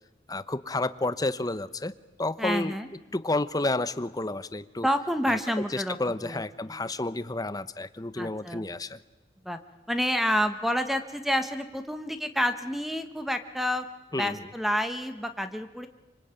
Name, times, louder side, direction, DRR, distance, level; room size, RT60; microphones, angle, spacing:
voice 1, 0.3-1.9 2.2-2.7 3.1-4.9 5.3-5.4 5.7-9.0 14.1-14.5, left 2 dB, 20° left, 14 dB, 0.9 m, -30 dB
voice 2, 2.4-2.9 4.8-6.0 6.2-6.8 8.2-8.7 9.4-9.6 9.9-13.8 14.2-15.9, equal, ahead, 9 dB, 1.3 m, -29 dB
25.5 x 24.5 x 9.0 m, 1.1 s
head